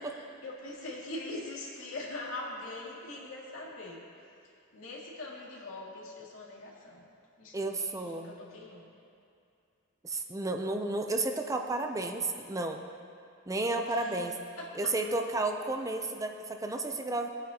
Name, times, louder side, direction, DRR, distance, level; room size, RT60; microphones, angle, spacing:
voice 1, 0.0-4.1 4.7-7.1 7.4-8.9 13.9-14.3 14.6-15.0, left 2 dB, 80° left, -4 dB, 2.3 m, -42 dB
voice 2, 7.5-8.4 10.0-12.8 13.5-14.4 14.8-17.3, right 2 dB, 15° right, 4 dB, 0.5 m, -32 dB
19.0 x 9.3 x 2.9 m, 2.5 s
head